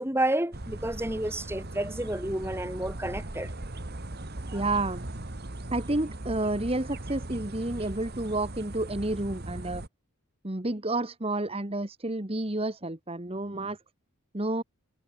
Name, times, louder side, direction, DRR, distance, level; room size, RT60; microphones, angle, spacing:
voice 1, 0.0-3.5 4.5-4.6, right 1 dB, 10° right, 3.2 m, -30 dB
sound 1, 0.5-9.9, right 1 dB, 45° right, 1.8 m, -39 dB
voice 2, 4.5-5.0 5.7-9.8 10.4-13.8 14.3-14.6, right 2 dB, 25° right, 1.4 m, -30 dB
head